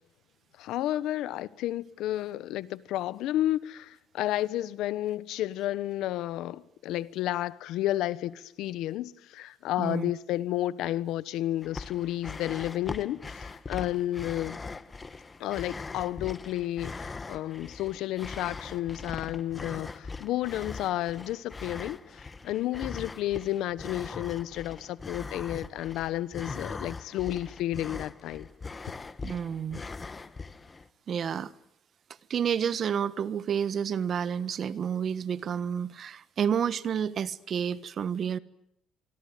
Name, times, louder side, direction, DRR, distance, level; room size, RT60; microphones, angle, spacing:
voice 1, 0.6-14.6 15.4-28.5, left 14 dB, 80° left, 1.1 m, -31 dB
voice 2, 9.8-10.1 29.2-29.8 31.1-31.5 32.3-38.4, right 8 dB, 50° right, 1.3 m, -30 dB
sound 1, 11.6-30.9, left 4 dB, 25° left, 1.4 m, -41 dB
25.5 x 24.5 x 9.5 m
cardioid pair, 95°, 0 cm